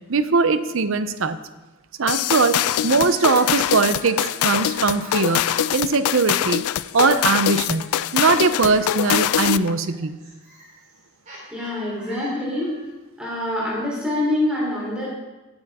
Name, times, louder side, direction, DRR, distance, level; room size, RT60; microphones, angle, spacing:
voice 1, 0.1-1.4 2.0-2.6 2.8-6.6 6.9-7.9 8.1-10.2, right 4 dB, 60° right, 12 dB, 0.6 m, -20 dB
sound 1, 2.1-9.7, left 10 dB, 80° left, 0.3 m, -23 dB
sound 2, 2.7-5.9 7.0-12.9, right 1 dB, 35° right, 3.6 m, -44 dB
voice 2, 11.5-12.7 13.2-15.1, left 1 dB, 5° right, -6 dB, 3.5 m, -25 dB
16.5 x 8.9 x 3.6 m, 1.1 s
head